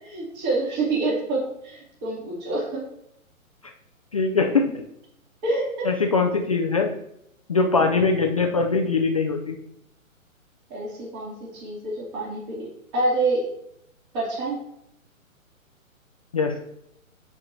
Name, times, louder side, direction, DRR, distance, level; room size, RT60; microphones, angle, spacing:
voice 1, 0.0-2.8 5.4-5.8 10.7-12.7 12.9-13.4 14.1-14.6, right 2 dB, 30° right, -4 dB, 2.6 m, -27 dB
voice 2, 4.1-4.8 5.8-6.9 7.5-9.6 16.3-16.5, left 4 dB, 25° left, 2 dB, 0.4 m, -22 dB
13.0 x 4.7 x 2.8 m, 0.76 s
figure-of-eight pair, 130°, 42 cm